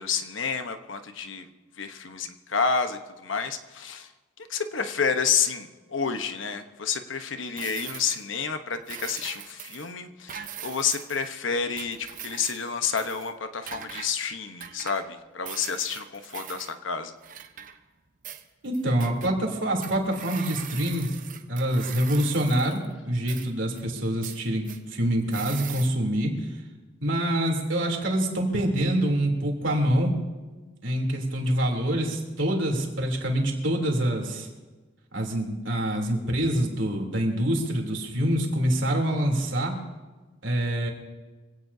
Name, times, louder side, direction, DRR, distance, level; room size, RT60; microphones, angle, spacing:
voice 1, 0.0-1.5 1.8-4.1 4.5-17.1, left 6 dB, 85° left, 7 dB, 1.1 m, -29 dB
sound 1, 7.6-8.3 8.8-9.9 10.3-11.3 11.7-12.7 13.0-13.3 13.7-14.1 14.6-15.1 15.5-16.7 17.2-18.0 18.2-19.3 19.8-22.9 23.3-23.8 24.2-24.8 25.3-25.9, right 9 dB, 45° right, 0.9 m, -41 dB
voice 2, 18.6-21.1 21.5-26.5 27.0-30.1 30.8-34.5 35.1-39.8 40.4-40.9, right 1 dB, 80° right, 1 dB, 3.3 m, -26 dB
24.5 x 17.0 x 2.8 m, 1.3 s
head